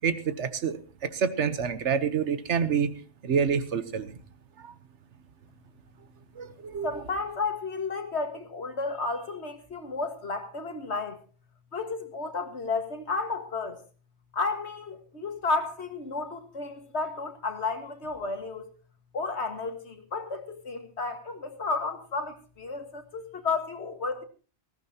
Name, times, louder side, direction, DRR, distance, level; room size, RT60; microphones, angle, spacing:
voice 1, 0.0-4.2 4.6-4.7 6.4-7.0, right 6 dB, 75° right, 1.3 m, -28 dB
voice 2, 6.8-11.2 11.7-13.8 14.3-18.7 19.1-24.2, left 3 dB, 70° left, 2.0 m, -32 dB
19.0 x 15.0 x 2.9 m
omnidirectional pair, 1.2 m